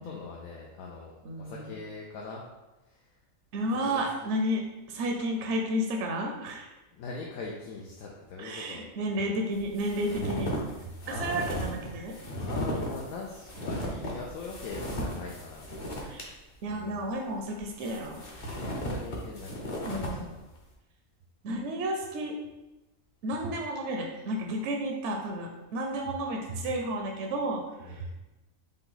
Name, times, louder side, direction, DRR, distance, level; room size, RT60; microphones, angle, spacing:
voice 1, 0.0-2.4 2.8-3.2 3.9-4.3 6.9-8.9 11.0-11.8 12.1-15.7 16.7-17.1 18.6-20.4 27.8-28.1, left 4 dB, 80° left, -2 dB, 1.0 m, -42 dB
voice 2, 1.2-1.8 3.5-4.6 4.9-6.7 8.4-10.5 11.1-12.2 16.0-16.3 16.6-18.2 19.9-20.3 21.4-22.4 23.2-28.2, right 1 dB, 65° right, 2 dB, 0.8 m, -32 dB
sound 1, 9.6-16.2 16.6-16.7 17.6-20.2, equal, 40° left, 0.8 m, -36 dB
5.2 x 2.3 x 3.9 m, 1.0 s
omnidirectional pair, 1.5 m